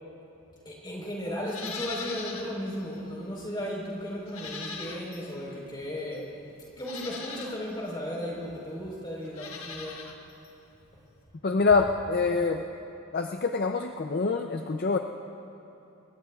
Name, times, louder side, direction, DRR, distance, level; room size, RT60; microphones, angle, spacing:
voice 1, 0.6-6.3 6.8-10.0, equal, 20° left, -3 dB, 4.0 m, -35 dB
Livestock farm animals working animals, 1.5-2.5 2.9-3.0 4.3-5.3 6.1-6.2 6.8-7.6 9.2-10.2 10.4-10.5, left 5 dB, 70° left, 1.4 m, -39 dB
voice 2, 11.4-12.6 13.1-15.0, left 4 dB, 45° left, 5 dB, 0.5 m, -25 dB
28.0 x 20.5 x 2.4 m, 3.0 s
head